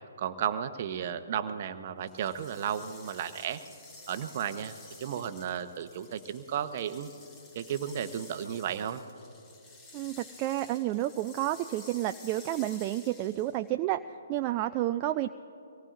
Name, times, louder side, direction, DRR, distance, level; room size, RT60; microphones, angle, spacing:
voice 1, 0.2-3.6 4.1-7.1 7.5-9.0, right 9 dB, 45° right, 11 dB, 0.9 m, -34 dB
sound 1, 2.0-13.7, left 2 dB, 20° left, 2.1 m, -52 dB
voice 2, 9.9-15.3, right 14 dB, 30° right, 8 dB, 0.3 m, -30 dB
25.0 x 18.5 x 2.6 m, 2.9 s
figure-of-eight pair, 135°, 0 cm